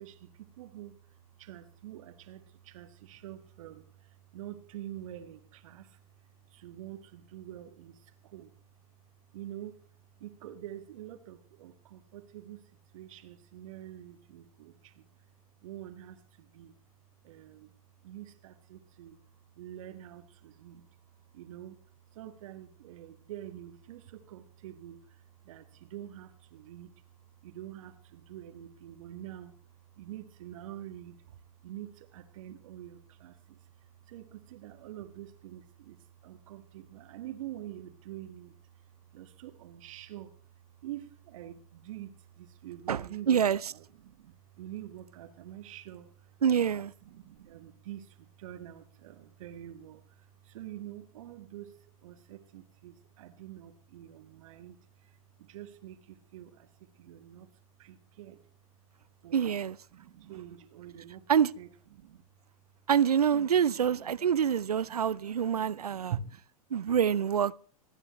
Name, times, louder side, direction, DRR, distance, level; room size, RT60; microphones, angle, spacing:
voice 1, 0.0-8.5 9.3-9.8 10.2-15.0 15.6-16.7 17.2-17.7 18.0-19.2 19.6-20.9 21.3-21.8 22.1-27.0 27.4-29.6 30.0-40.3 40.8-57.5 57.8-58.4 59.2-59.6 59.9-61.3 61.6-62.2 63.3-66.4, right 11 dB, 60° right, 1.7 m, -46 dB
voice 2, 42.9-43.6 46.4-46.9 59.3-59.8 61.3-61.5 62.9-66.1 66.7-67.5, right 8 dB, 85° right, 0.5 m, -26 dB
27.0 x 9.7 x 3.1 m
hypercardioid pair, 100°, 19 cm